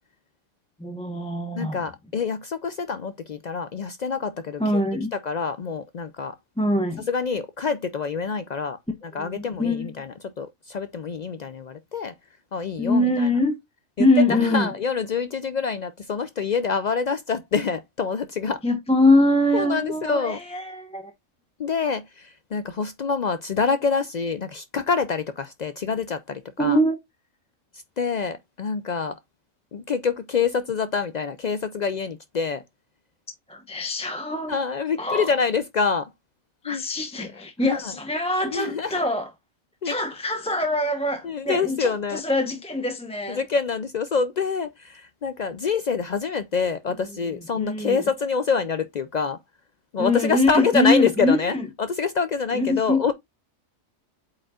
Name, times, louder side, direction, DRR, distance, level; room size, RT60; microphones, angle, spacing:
voice 1, 0.8-1.9 4.6-5.1 6.6-7.1 9.2-9.9 12.8-13.5 14.0-14.7 18.6-21.1 26.6-27.0 33.5-34.6 35.0-35.3 36.6-39.3 39.8-43.4 47.1-47.2 47.6-48.0 50.0-51.7 52.5-53.1, left 1 dB, 5° left, 0.7 m, -23 dB
voice 2, 1.5-4.8 5.2-6.4 7.1-12.1 12.5-13.3 14.0-18.6 19.5-20.4 21.6-26.8 28.0-29.2 29.7-32.6 34.5-36.1 36.6-36.8 37.2-37.3 37.7-37.9 38.5-39.0 39.8-39.9 41.2-42.2 43.3-49.4 49.9-53.1, left 5 dB, 80° left, 0.3 m, -26 dB
8.3 x 5.1 x 2.4 m
omnidirectional pair, 1.4 m